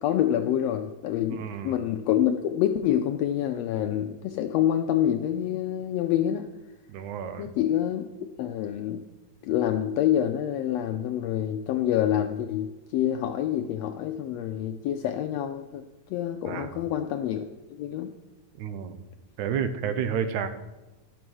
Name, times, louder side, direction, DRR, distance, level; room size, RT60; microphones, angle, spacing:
voice 1, 0.0-6.5 7.4-8.0 8.4-9.0 9.4-15.8 16.1-17.5 17.8-18.1, left 11 dB, 80° left, 6 dB, 1.5 m, -27 dB
voice 2, 1.3-1.8 6.9-7.5 16.5-16.8 18.6-19.0 19.4-20.5, right 7 dB, 85° right, 10 dB, 2.2 m, -31 dB
11.5 x 5.5 x 6.1 m, 1.1 s
omnidirectional pair, 3.4 m